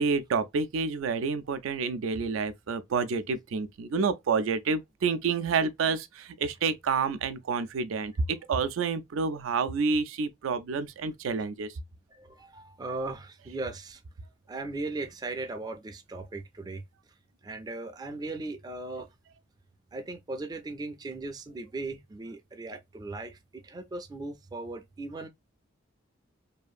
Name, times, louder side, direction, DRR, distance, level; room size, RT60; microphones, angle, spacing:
voice 1, 0.0-11.7, right 5 dB, 85° right, 0.4 m, -29 dB
voice 2, 12.1-14.0 14.5-16.8 17.4-19.1 19.9-25.3, right 2 dB, 20° right, 0.4 m, -38 dB
2.7 x 2.5 x 2.2 m
head